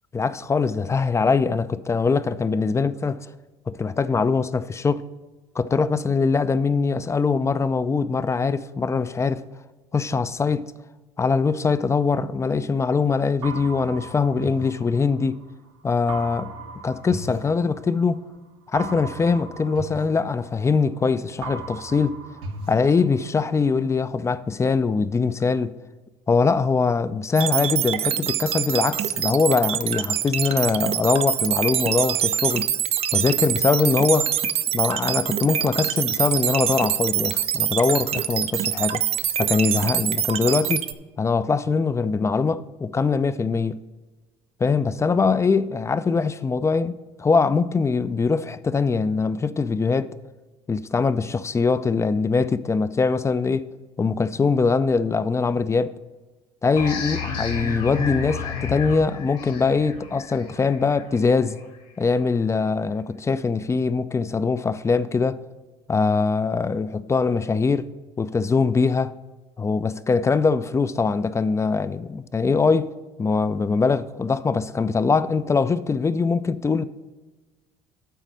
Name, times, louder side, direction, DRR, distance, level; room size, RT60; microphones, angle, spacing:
voice 1, 0.1-3.3 3.7-5.0 5.6-9.4 9.9-10.7 11.2-15.4 15.8-16.5 16.8-18.2 18.7-22.2 22.7-25.7 26.3-32.7 33.1-34.3 34.7-39.0 39.4-40.9 41.2-43.8 44.6-50.1 50.7-53.7 54.0-55.9 56.6-61.6 62.0-65.4 65.9-67.9 68.2-69.1 69.6-72.9 73.2-76.8, left 4 dB, 20° left, 0.4 m, -22 dB
sound 1, 13.4-15.5 16.1-18.2 18.7-21.0 21.4-23.5, right 3 dB, 80° right, 1.1 m, -37 dB
sound 2, 27.4-40.9, right 10 dB, 45° right, 0.5 m, -24 dB
sound 3, 56.8-62.1, left 5 dB, 65° left, 2.2 m, -32 dB
9.2 x 4.1 x 6.3 m
hypercardioid pair, 70°, 14 cm